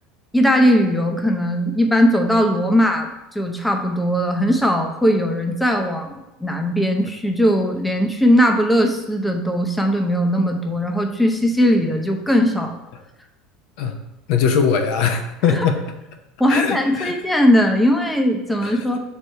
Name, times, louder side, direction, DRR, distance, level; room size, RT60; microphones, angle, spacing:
voice 1, 0.3-12.8 15.5-15.7 16.4-19.0, equal, 5° left, 3 dB, 0.7 m, -19 dB
voice 2, 14.3-15.8 16.5-17.1 18.6-18.8, left 6 dB, 70° left, 5 dB, 0.7 m, -20 dB
6.6 x 4.7 x 3.4 m, 0.96 s
supercardioid pair, 130°, 0 cm